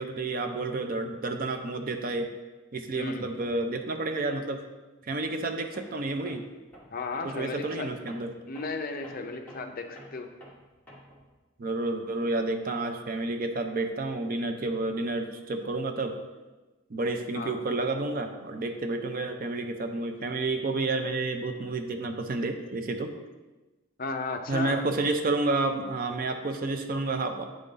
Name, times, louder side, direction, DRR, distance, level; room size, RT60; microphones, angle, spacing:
voice 1, 0.0-2.3 2.7-4.6 5.0-6.4 7.2-8.3 11.6-16.2 16.9-23.2 24.5-27.4, right 2 dB, 40° right, 6 dB, 0.5 m, -30 dB
voice 2, 2.9-3.3 6.9-7.9 8.5-10.3 17.3-17.6 24.0-24.8, left 3 dB, 40° left, 4 dB, 0.5 m, -34 dB
Tools, 5.7-6.0 6.3-11.3, equal, 5° left, 1.2 m, -51 dB
8.3 x 3.8 x 4.0 m, 1.2 s
head